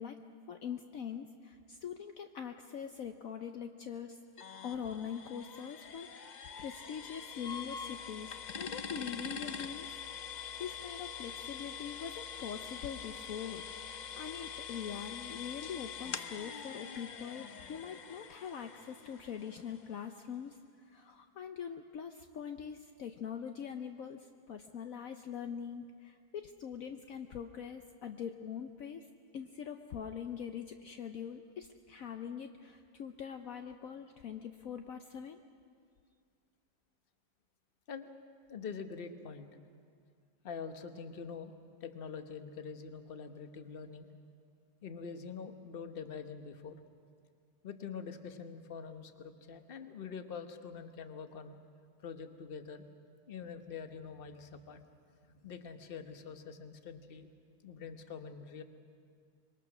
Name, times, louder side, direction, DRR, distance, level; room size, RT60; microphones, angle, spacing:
voice 1, 0.0-4.2 4.6-9.9 10.6-20.6 20.8-29.1 29.3-35.4, left 8 dB, 65° left, 6 dB, 1.1 m, -43 dB
sound 1, 4.4-20.1, left 7 dB, 80° left, 0.4 m, -44 dB
voice 2, 38.5-39.5 40.4-41.5 41.8-44.1 44.8-46.8 47.6-51.6 52.0-52.9 53.2-54.8 55.3-57.3 57.6-58.6, left 6 dB, 40° left, 8 dB, 1.1 m, -45 dB
25.5 x 22.5 x 6.1 m, 2.2 s
omnidirectional pair, 1.7 m